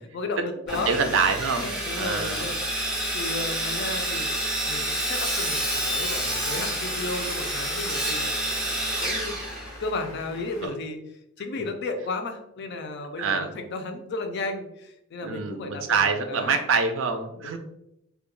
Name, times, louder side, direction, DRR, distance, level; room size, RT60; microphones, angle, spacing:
voice 1, 0.1-1.0 1.6-4.3 4.6-8.7 9.0-9.4 9.8-11.0 11.4-16.6 17.4-17.6, left 3 dB, 55° left, 6 dB, 0.4 m, -34 dB
Sawing, 0.7-10.1, right 1 dB, 5° right, 0.4 m, -29 dB
voice 2, 0.9-1.7 2.0-2.5 10.6-10.7 13.2-13.5 15.2-17.6, right 5 dB, 70° right, 6 dB, 0.4 m, -25 dB
sound 1, 5.6-10.7, left 2 dB, 80° left, 0.8 m, -45 dB
2.3 x 2.1 x 2.9 m, 0.81 s
head